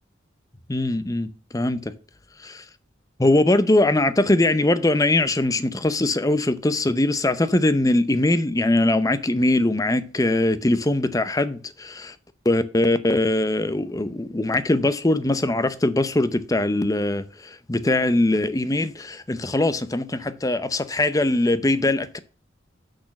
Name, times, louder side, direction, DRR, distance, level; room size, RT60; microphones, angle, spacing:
voice 1, 0.7-1.9 2.4-2.6 3.2-12.1 12.4-22.2, left 2 dB, 20° left, 0.7 m, -21 dB
6.4 x 6.2 x 6.0 m
head